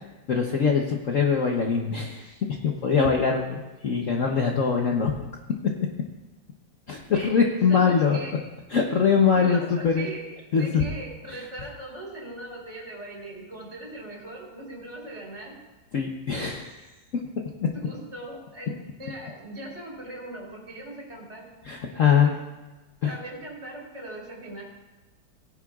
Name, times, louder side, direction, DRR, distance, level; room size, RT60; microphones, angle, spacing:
voice 1, 0.3-5.1 6.9-8.2 8.7-10.1 10.5-10.9 15.9-16.7 17.6-17.7 21.6-22.3 23.0-23.2, left 6 dB, 50° left, 1 dB, 1.1 m, -23 dB
voice 2, 7.7-8.3 9.3-10.2 10.6-15.6 17.7-21.5 21.9-22.3 23.0-24.6, right 1 dB, 35° right, -3 dB, 3.8 m, -39 dB
18.5 x 10.5 x 2.4 m, 1.1 s
omnidirectional pair, 2.1 m